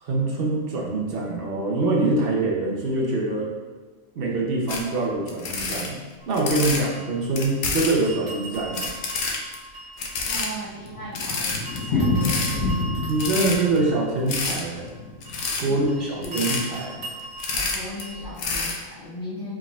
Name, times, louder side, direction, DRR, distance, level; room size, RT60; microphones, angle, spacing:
voice 1, 0.0-3.5 4.2-6.0 6.3-8.9 13.1-14.9 15.6-17.0, right 2 dB, 50° right, -3 dB, 0.8 m, -24 dB
sound 1, 4.7-4.8 5.3-6.8 7.4-8.0 8.5-9.6 10.0-10.5 10.9-11.0 11.1-11.8 12.2-12.5 13.1-13.8 14.3-14.6 15.2-15.6 16.2-16.6 17.2-18.0 18.4-18.8, left 4 dB, 65° left, 0.9 m, -28 dB
sound 2, 6.2-7.7 8.0-11.2 11.7-18.4, right 2 dB, 70° right, 1.5 m, -40 dB
Thunder, 10.0-16.3 16.5-16.6 16.9-17.0 17.3-17.4 17.9-18.3, left 2 dB, 80° left, 1.2 m, -29 dB
voice 2, 10.2-12.7 15.7-16.7 17.7-19.6, equal, 25° left, -10 dB, 1.6 m, -38 dB
4.5 x 3.6 x 2.4 m, 1.4 s
omnidirectional pair, 1.5 m